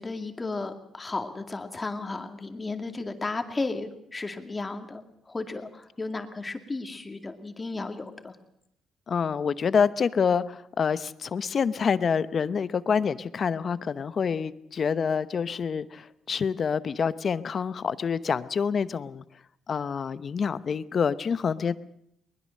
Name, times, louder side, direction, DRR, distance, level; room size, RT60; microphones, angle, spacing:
voice 1, 0.0-8.4, left 3 dB, 25° left, 6 dB, 2.3 m, -34 dB
voice 2, 9.1-19.2 19.7-21.8, left 6 dB, 45° left, 15 dB, 0.8 m, -27 dB
21.0 x 20.5 x 6.5 m, 0.75 s
cardioid pair, 90°, 0 cm